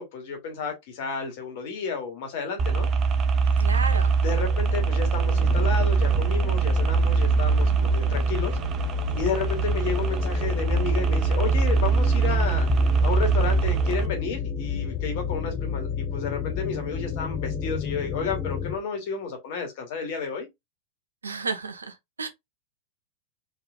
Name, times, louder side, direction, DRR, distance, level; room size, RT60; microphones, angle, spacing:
voice 1, 0.0-2.9 4.2-8.6 9.1-12.7 13.0-20.5, left 5 dB, 50° left, 2.1 m, -31 dB
sound 1, 2.6-14.1, right 5 dB, 30° right, 0.8 m, -23 dB
voice 2, 3.6-4.1 21.2-22.3, right 4 dB, 75° right, 1.1 m, -32 dB
sound 2, 4.3-18.8, left 7 dB, 30° left, 1.4 m, -31 dB
4.3 x 4.0 x 2.4 m
figure-of-eight pair, 90°, 0 cm